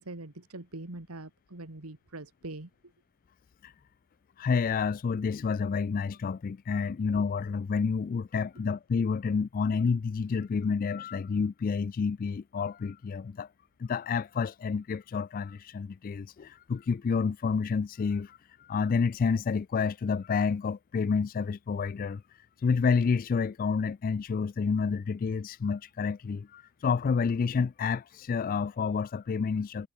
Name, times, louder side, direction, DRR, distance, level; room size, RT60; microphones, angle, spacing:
voice 1, 0.0-2.7 8.4-8.5, right 2 dB, 80° right, 2.0 m, -43 dB
voice 2, 4.4-13.5 13.8-22.2 22.6-29.9, left 5 dB, 40° left, 0.3 m, -29 dB
head